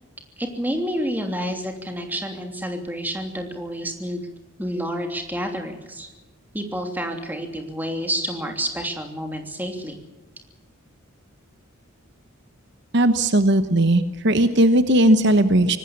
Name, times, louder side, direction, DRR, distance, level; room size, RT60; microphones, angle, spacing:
voice 1, 0.4-4.3 4.6-6.1 6.5-9.9, equal, 10° right, 4 dB, 3.0 m, -29 dB
voice 2, 12.9-15.8, right 1 dB, 55° right, 10 dB, 1.1 m, -17 dB
25.0 x 19.0 x 7.3 m, 1.1 s
head